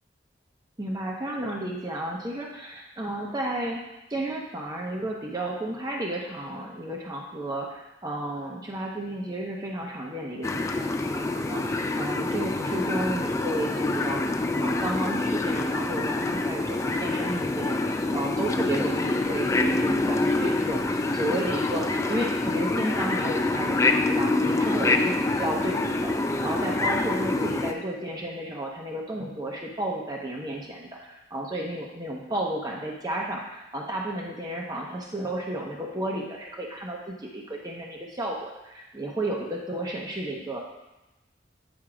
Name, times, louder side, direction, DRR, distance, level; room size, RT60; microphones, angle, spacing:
voice 1, 0.8-3.8 4.1-40.6, right 1 dB, 20° right, -2 dB, 0.9 m, -32 dB
sound 1, 10.4-27.7, left 2 dB, 15° left, 0.3 m, -26 dB
8.8 x 3.6 x 4.9 m, 0.99 s
head